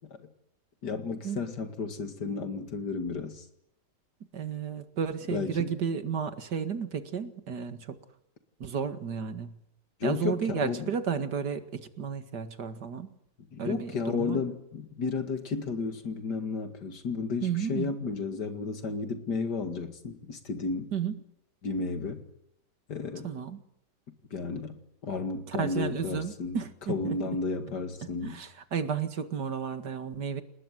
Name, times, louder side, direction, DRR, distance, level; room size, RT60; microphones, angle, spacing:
voice 1, 0.8-3.5 5.3-5.7 10.0-10.9 13.5-20.9 21.6-22.3 22.9-23.3 24.3-26.6 26.9-28.4, left 4 dB, 75° left, 2.7 m, -33 dB
voice 2, 4.3-8.0 8.6-9.5 10.0-13.1 13.6-14.4 17.4-17.9 20.9-21.2 23.2-23.6 25.5-27.2 28.2-30.4, right 7 dB, 75° right, 2.4 m, -32 dB
29.0 x 19.5 x 9.4 m
omnidirectional pair, 1.8 m